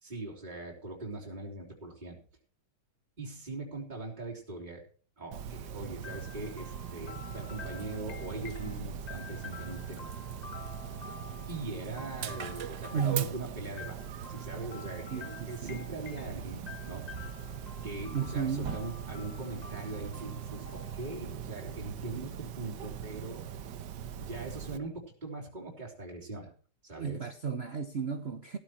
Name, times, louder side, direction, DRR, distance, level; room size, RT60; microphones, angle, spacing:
voice 1, 0.0-2.2 3.2-4.8 5.2-10.1 11.5-14.0 14.3-17.2 17.8-23.5 24.2-26.5 26.8-27.3, right 2 dB, 25° right, 3.8 m, -41 dB
Dog, 5.3-24.8, right 8 dB, 85° right, 1.7 m, -41 dB
sound 1, 6.0-21.8, left 6 dB, 30° left, 0.8 m, -50 dB
voice 2, 12.9-13.3 15.1-15.9 18.1-18.8 27.0-28.6, right 7 dB, 45° right, 1.1 m, -33 dB
15.5 x 14.0 x 3.0 m
omnidirectional pair, 1.8 m